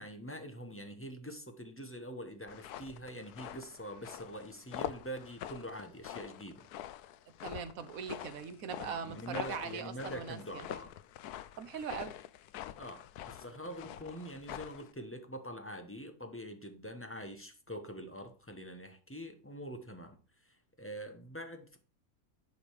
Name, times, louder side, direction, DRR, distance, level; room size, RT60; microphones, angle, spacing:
voice 1, 0.0-6.6 8.8-10.9 12.8-20.2 20.4-21.8, equal, 10° left, 0.9 m, -45 dB
sound 1, 2.5-14.9, left 12 dB, 80° left, 1.1 m, -45 dB
voice 2, 7.4-10.6 11.6-12.1, right 7 dB, 65° right, 1.3 m, -41 dB
11.0 x 5.2 x 4.8 m
omnidirectional pair, 1.6 m